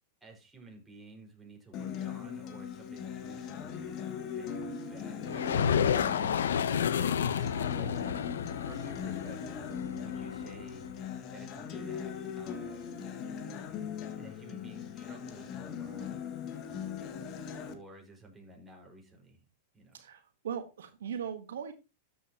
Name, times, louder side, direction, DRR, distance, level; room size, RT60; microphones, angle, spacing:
voice 1, 0.2-4.0 4.3-8.3 8.6-10.9 11.3-13.0 14.2-17.2 17.6-19.5 19.7-20.0, right 2 dB, 10° right, 0 dB, 4.9 m, -53 dB
Acoustic guitar, 1.7-17.7, left 7 dB, 40° left, 1.9 m, -40 dB
sound 1, 5.2-10.9, left 8 dB, 80° left, 0.8 m, -31 dB
voice 2, 19.9-21.7, right 8 dB, 80° right, 8 dB, 1.3 m, -39 dB
13.0 x 7.7 x 2.9 m, 0.26 s
hypercardioid pair, 110°, 0 cm